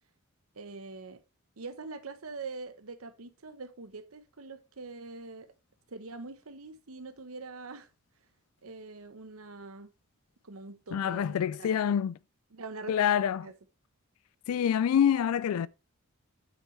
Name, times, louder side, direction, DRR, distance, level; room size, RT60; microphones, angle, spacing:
voice 1, 0.5-1.2 1.6-5.5 5.9-7.9 8.6-9.9 10.4-11.8 12.5-13.0 13.4-13.5, right 3 dB, 85° right, 1.0 m, -44 dB
voice 2, 10.9-12.2 12.9-13.5 14.5-15.7, left 8 dB, 90° left, 0.3 m, -26 dB
7.6 x 6.2 x 3.2 m
head